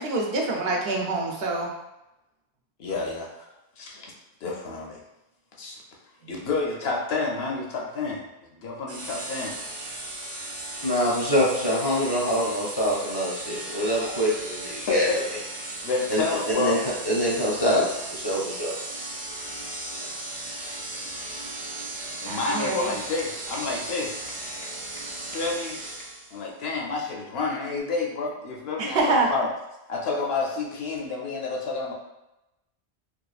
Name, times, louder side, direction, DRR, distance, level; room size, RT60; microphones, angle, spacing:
voice 1, 0.0-1.7 6.2-6.3 22.3-22.9 28.8-29.3, right 3 dB, 75° right, 0 dB, 0.8 m, -26 dB
voice 2, 2.8-3.5 3.8-4.1 4.4-5.0 5.6-5.8 6.3-9.6 14.8-15.3 15.8-16.8 21.8-21.9 22.2-24.2 25.0-25.1 25.3-25.8 26.3-29.5 29.9-31.9, left 4 dB, 75° left, -1 dB, 0.8 m, -29 dB
sound 1, 8.9-26.4, right 2 dB, 55° right, 0.3 m, -36 dB
voice 3, 10.8-15.1 16.1-16.2 16.6-16.8 17.0-17.9 18.1-18.8, equal, 30° left, -5 dB, 0.5 m, -24 dB
2.8 x 2.3 x 2.3 m, 0.92 s
omnidirectional pair, 1.0 m